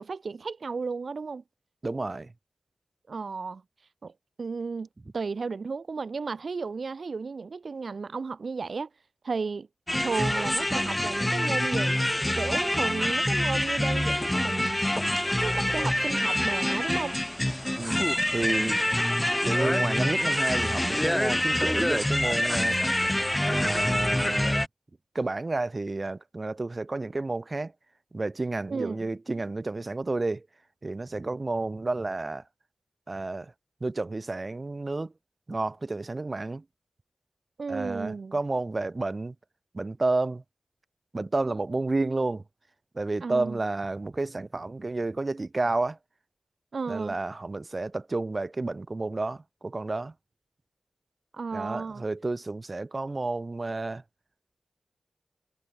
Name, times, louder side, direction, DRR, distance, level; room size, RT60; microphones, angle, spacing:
voice 1, 0.0-1.4 3.1-3.6 4.0-4.1 4.4-4.9 5.1-8.9 9.2-9.7 10.0-12.0 12.4-14.8 15.4-17.2 28.7-29.1 37.6-38.4 43.2-43.6 46.7-47.2 51.3-52.0, right 4 dB, 65° right, 0.6 m, -33 dB
voice 2, 1.8-2.3 17.8-18.8 19.4-22.8 23.4-24.6 25.1-27.7 28.1-30.5 30.8-32.4 33.1-33.5 33.8-35.1 35.5-36.6 37.7-39.3 39.7-40.4 41.1-42.4 42.9-46.0 46.9-50.1 51.5-54.0, right 2 dB, 40° right, 0.9 m, -31 dB
sound 1, 9.9-24.7, left 1 dB, 15° left, 0.5 m, -26 dB
cardioid pair, 55°, 0 cm